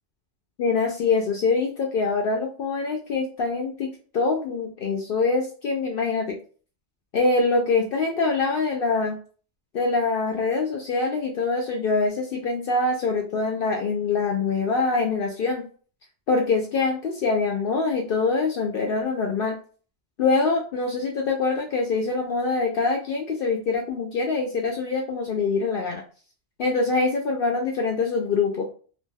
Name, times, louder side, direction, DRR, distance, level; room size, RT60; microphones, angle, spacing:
voice 1, 0.6-6.4 7.1-9.2 9.7-15.7 16.3-19.5 20.2-26.0 26.6-28.7, left 4 dB, 60° left, 1 dB, 0.7 m, -24 dB
2.6 x 2.2 x 3.3 m, 0.41 s
omnidirectional pair, 1.2 m